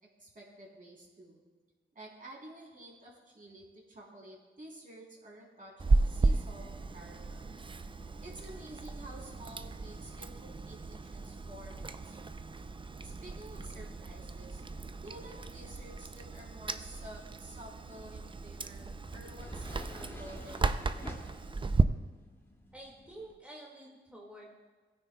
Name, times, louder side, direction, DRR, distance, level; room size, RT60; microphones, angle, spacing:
voice 1, 0.2-1.4 1.9-6.7 6.9-7.5 8.2-12.3 13.0-21.7, right 1 dB, 45° right, -3 dB, 3.6 m, -51 dB
Chewing mastication, 5.8-21.8, right 3 dB, 25° right, 0.5 m, -34 dB
sound 1, 17.8-23.3, equal, 15° left, 2.3 m, -50 dB
voice 2, 22.7-24.5, right 1 dB, 5° right, -3 dB, 2.0 m, -49 dB
16.0 x 9.6 x 2.3 m, 1.4 s
cardioid pair, 60°, 19 cm